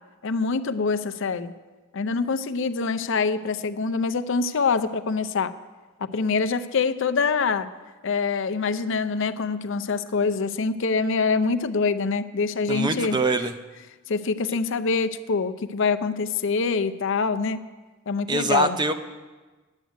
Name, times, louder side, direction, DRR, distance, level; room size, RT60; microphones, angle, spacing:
voice 1, 0.2-1.5 1.9-5.5 6.1-7.7 8.0-13.2 14.1-17.6 18.1-18.8, left 4 dB, 65° left, 10 dB, 0.6 m, -25 dB
voice 2, 12.7-13.5 18.3-18.9, right 2 dB, 20° right, 9 dB, 0.6 m, -23 dB
10.5 x 8.0 x 9.2 m, 1.3 s
head